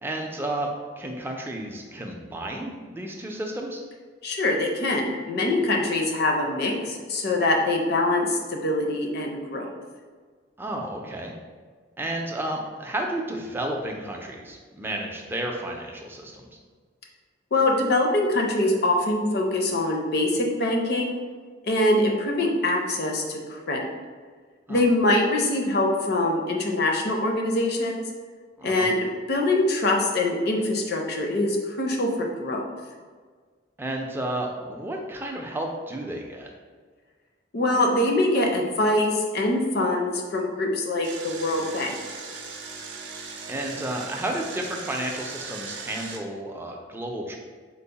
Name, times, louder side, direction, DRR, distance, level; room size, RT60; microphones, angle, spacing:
voice 1, 0.0-3.8 10.6-11.3 12.0-16.5 24.7-24.8 28.6-28.9 33.8-36.5 43.5-47.4, right 1 dB, 10° right, 1 dB, 0.4 m, -32 dB
voice 2, 4.2-9.7 17.5-21.2 21.6-23.8 24.7-28.0 28.6-32.6 37.5-41.9, left 1 dB, 55° left, 1 dB, 0.6 m, -24 dB
Engine, 41.0-46.2, right 4 dB, 65° right, 0.5 m, -38 dB
4.5 x 2.0 x 3.9 m, 1.5 s
head